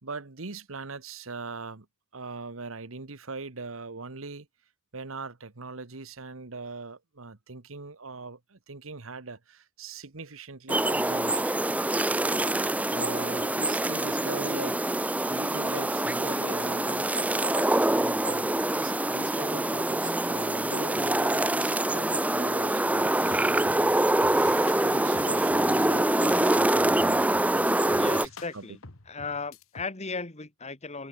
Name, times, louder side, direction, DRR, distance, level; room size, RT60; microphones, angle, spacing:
voice 1, 0.0-1.9 2.1-4.5 4.9-11.6 12.9-17.1 17.9-24.0 24.4-28.7, right 3 dB, 75° right, 1.4 m, -41 dB
sound 1, 10.7-28.3, right 1 dB, 5° right, 0.5 m, -25 dB
sound 2, 22.9-25.9 26.2-29.8, left 3 dB, 85° left, 2.1 m, -48 dB
voice 2, 28.0-28.8 29.1-31.1, left 4 dB, 35° left, 2.2 m, -36 dB
head